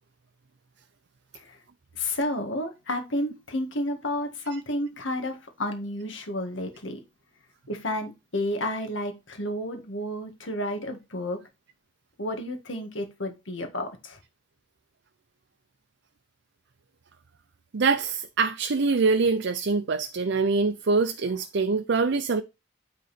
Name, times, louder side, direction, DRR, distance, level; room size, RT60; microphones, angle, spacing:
voice 1, 2.0-7.0 7.7-11.4 12.2-14.2, left 1 dB, 75° left, 1.7 m, -31 dB
voice 2, 17.7-22.4, right 4 dB, 65° right, 0.5 m, -24 dB
9.3 x 4.0 x 4.2 m
head